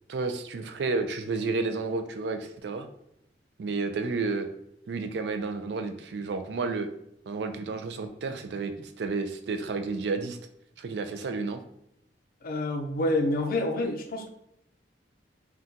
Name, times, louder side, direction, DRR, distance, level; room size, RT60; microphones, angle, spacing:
voice 1, 0.1-2.9 3.6-4.5 4.9-6.9 7.3-10.4 10.8-11.6, right 4 dB, 70° right, 7 dB, 0.4 m, -31 dB
voice 2, 12.4-14.3, left 1 dB, 50° left, 5 dB, 0.4 m, -28 dB
2.7 x 2.3 x 3.7 m, 0.77 s
head